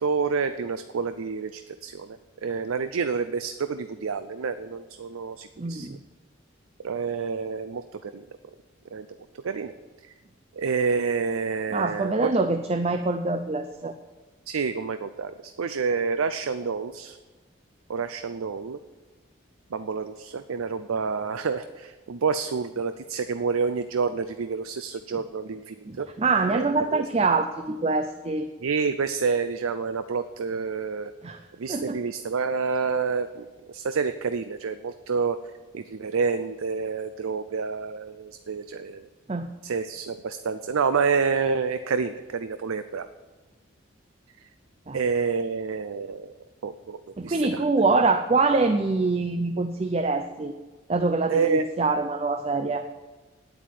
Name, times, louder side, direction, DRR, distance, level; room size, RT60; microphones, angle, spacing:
voice 1, 0.0-6.0 6.8-8.2 8.9-9.1 9.4-9.7 10.5-12.4 14.5-17.2 17.9-18.8 19.7-26.1 26.5-27.0 28.6-31.1 31.6-35.4 35.7-39.1 39.6-43.1 44.9-46.3 46.6-47.0 47.2-47.6 51.3-51.7, right 5 dB, 90° right, 11 dB, 0.5 m, -28 dB
voice 2, 5.6-6.0 11.7-13.9 25.9-28.5 31.2-31.4 31.7-32.0 39.3-39.5 44.9-45.0 47.2-50.5 50.9-52.8, right 3 dB, 30° right, 9 dB, 0.5 m, -25 dB
9.4 x 8.4 x 9.2 m, 1.2 s
head